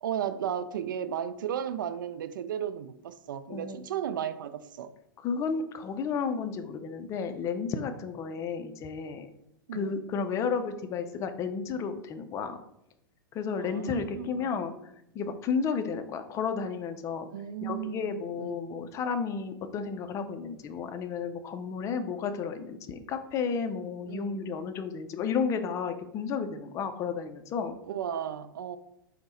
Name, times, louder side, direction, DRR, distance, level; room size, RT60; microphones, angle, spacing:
voice 1, 0.0-4.9 9.7-9.9 13.6-14.5 17.3-18.8 24.1-24.6 27.9-28.8, right 9 dB, 60° right, 0.4 m, -35 dB
voice 2, 5.2-9.3 9.7-12.6 13.3-14.7 15.1-17.3 17.6-27.8, left 6 dB, 25° left, 0.4 m, -32 dB
5.2 x 2.1 x 4.0 m
figure-of-eight pair, 100°, 12 cm